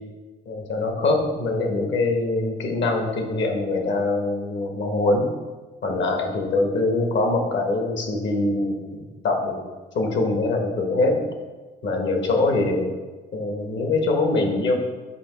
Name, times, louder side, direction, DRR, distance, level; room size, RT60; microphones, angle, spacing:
voice 1, 0.5-5.3 5.8-9.7 9.9-11.2 11.8-12.9 13.3-14.8, left 2 dB, 65° left, 3 dB, 1.4 m, -23 dB
8.1 x 3.0 x 6.1 m, 1.3 s
cardioid pair, 90°, 20 cm